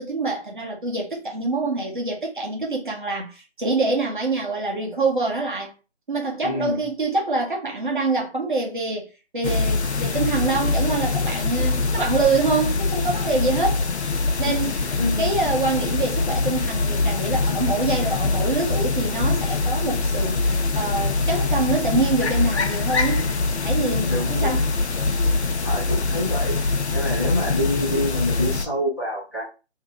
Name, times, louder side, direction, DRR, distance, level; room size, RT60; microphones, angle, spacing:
voice 1, 0.0-5.7 6.1-9.1 9.3-13.8 14.4-23.3 23.6-24.7, right 3 dB, 45° right, 0.9 m, -25 dB
voice 2, 6.4-6.8 14.6-15.3 23.8-24.6 25.6-26.6 26.9-29.4, left 1 dB, 15° left, 1.2 m, -27 dB
sound 1, 9.4-28.7, left 3 dB, 75° left, 0.7 m, -23 dB
2.8 x 2.8 x 3.5 m
figure-of-eight pair, 170°, 34 cm